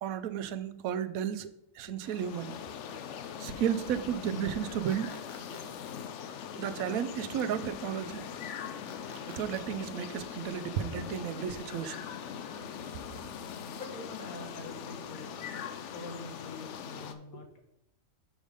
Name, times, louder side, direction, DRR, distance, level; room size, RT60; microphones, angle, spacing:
voice 1, 0.0-2.5 3.4-5.1 6.6-8.2 9.3-12.0, right 9 dB, 80° right, 12 dB, 1.0 m, -33 dB
sound 1, 2.0-17.1, left 7 dB, 65° left, 0.8 m, -41 dB
sound 2, 4.9-5.6 8.9-9.6, left 3 dB, 30° left, 0.8 m, -50 dB
voice 2, 13.7-15.3 15.8-17.5, left 2 dB, 90° left, 2 dB, 1.7 m, -46 dB
6.3 x 4.9 x 5.2 m, 0.81 s
omnidirectional pair, 1.4 m